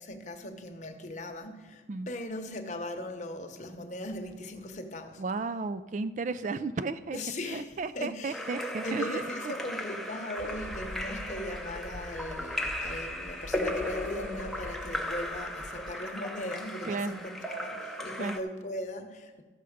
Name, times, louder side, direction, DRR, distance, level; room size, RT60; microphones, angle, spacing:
voice 1, 0.0-5.2 7.1-19.4, left 1 dB, 40° left, 5 dB, 0.9 m, -39 dB
voice 2, 5.2-7.2 7.5-9.5 16.8-17.2 18.2-18.4, right 4 dB, 40° right, 12 dB, 0.3 m, -34 dB
Splash splatter / Drip / Trickle dribble, 8.3-18.4, left 1 dB, ahead, 0.6 m, -36 dB
sound 1, 10.4-16.0, left 1 dB, 85° left, 0.7 m, -45 dB
13.5 x 6.8 x 5.0 m, 1.3 s
head